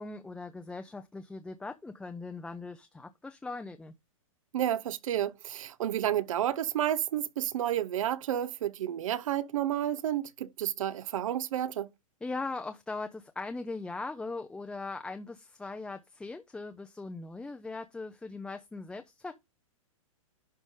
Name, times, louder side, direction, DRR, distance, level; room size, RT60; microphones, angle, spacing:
voice 1, 0.0-3.9 12.2-19.3, left 3 dB, 5° left, 0.5 m, -40 dB
voice 2, 4.5-11.9, right 11 dB, 70° right, 0.7 m, -31 dB
11.0 x 4.0 x 3.6 m
hypercardioid pair, 135°, 18 cm